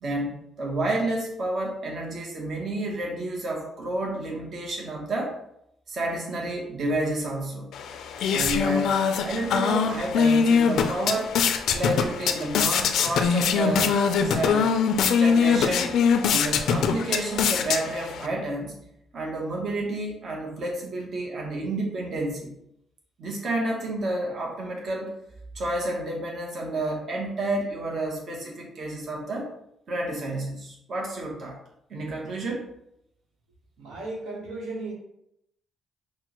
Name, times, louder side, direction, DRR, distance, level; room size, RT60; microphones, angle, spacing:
voice 1, 0.0-5.3 5.9-7.7 8.3-11.3 11.7-14.8 15.1-16.0 16.3-18.7 19.1-22.5 23.2-25.1 25.5-29.5 29.9-31.6 31.9-32.7, right 1 dB, 55° right, 0 dB, 0.8 m, -30 dB
sound 1, 7.7-18.3, left 6 dB, 75° left, 0.3 m, -23 dB
voice 2, 33.8-34.9, right 2 dB, 90° right, -2 dB, 1.0 m, -35 dB
5.9 x 2.1 x 2.9 m, 0.77 s
cardioid pair, 90°, 0 cm